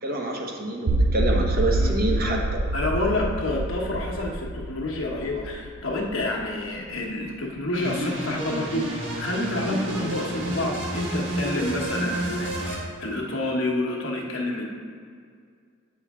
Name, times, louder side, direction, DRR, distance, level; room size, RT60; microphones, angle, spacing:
voice 1, 0.0-2.6, right 1 dB, 45° right, 1 dB, 1.0 m, -27 dB
sound 1, 0.9-6.9, right 1 dB, 85° right, 0.6 m, -27 dB
voice 2, 2.7-14.6, left 2 dB, 70° left, -1 dB, 1.2 m, -28 dB
sound 2, 7.7-12.8, right 1 dB, 60° right, 1.4 m, -30 dB
8.3 x 6.3 x 3.6 m, 2.2 s
head